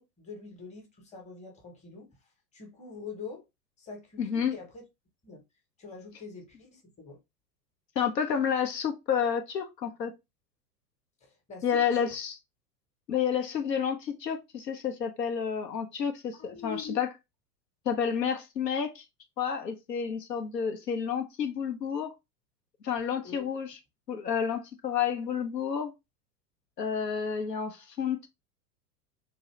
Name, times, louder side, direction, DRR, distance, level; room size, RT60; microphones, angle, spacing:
voice 1, 0.0-2.1 2.5-3.4 3.8-4.8 5.2-5.4 5.8-7.2 11.2-12.1 16.3-17.0 23.2-23.5, left 5 dB, 15° left, 1.0 m, -44 dB
voice 2, 4.2-4.5 8.0-10.1 11.6-12.3 13.1-17.1 17.9-19.0 19.4-22.1 22.8-23.7 24.1-25.9 26.8-28.3, left 7 dB, 80° left, 0.7 m, -30 dB
2.7 x 2.6 x 3.1 m
figure-of-eight pair, 90°, 49 cm